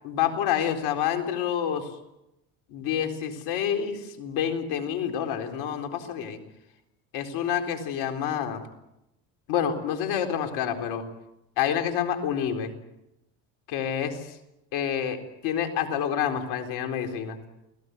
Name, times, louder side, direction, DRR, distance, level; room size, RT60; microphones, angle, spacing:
voice 1, 0.0-2.0 2.7-6.4 7.1-8.6 9.5-11.1 11.6-12.7 13.7-14.4 14.7-17.4, left 9 dB, 75° left, 5 dB, 4.1 m, -28 dB
29.0 x 18.0 x 8.2 m, 0.88 s
supercardioid pair, 80°, 39 cm